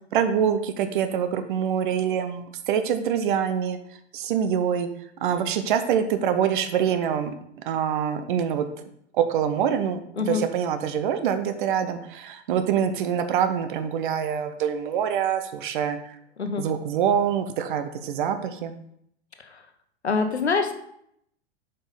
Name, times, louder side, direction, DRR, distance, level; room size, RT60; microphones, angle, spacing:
voice 1, 0.1-3.8 4.1-4.9 5.2-7.3 7.6-8.6 9.1-16.2 16.6-18.8, right 8 dB, 50° right, 9 dB, 0.9 m, -25 dB
voice 2, 20.0-20.7, left 4 dB, 75° left, 7 dB, 1.0 m, -25 dB
7.9 x 5.3 x 4.0 m, 0.71 s
figure-of-eight pair, 90°, 33 cm